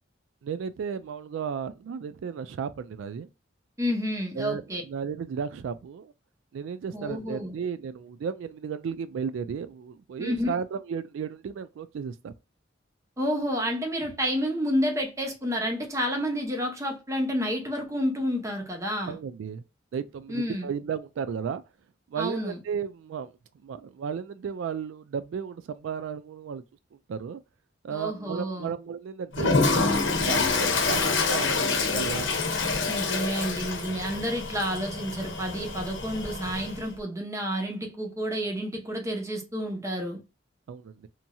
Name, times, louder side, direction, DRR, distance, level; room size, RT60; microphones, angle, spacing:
voice 1, 0.4-3.3 4.4-6.1 6.5-12.3 19.1-19.6 19.9-21.6 22.1-23.3 23.6-26.6 27.1-27.4 27.8-32.3 40.7-41.1, right 7 dB, 90° right, 0.3 m, -34 dB
voice 2, 3.8-4.8 6.9-7.5 10.2-10.5 13.2-19.2 20.3-20.7 22.2-22.6 27.9-28.7 32.9-40.2, equal, 15° right, 0.8 m, -30 dB
Toilet flush, 29.3-36.9, left 4 dB, 80° left, 0.8 m, -27 dB
2.9 x 2.6 x 2.2 m
head